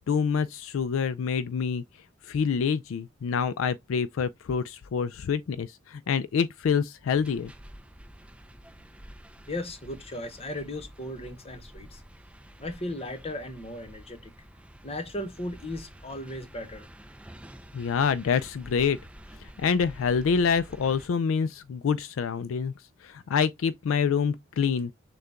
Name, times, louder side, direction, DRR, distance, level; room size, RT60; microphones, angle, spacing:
voice 1, 0.0-1.8 2.2-7.5 17.7-19.0 19.4-22.7 23.0-24.9, left 6 dB, 70° left, 0.3 m, -26 dB
sound 1, 7.1-21.1, equal, 5° right, 0.5 m, -49 dB
voice 2, 9.5-12.0 12.6-14.3 14.8-16.9, left 1 dB, 30° left, 1.0 m, -36 dB
6.5 x 2.3 x 3.5 m
head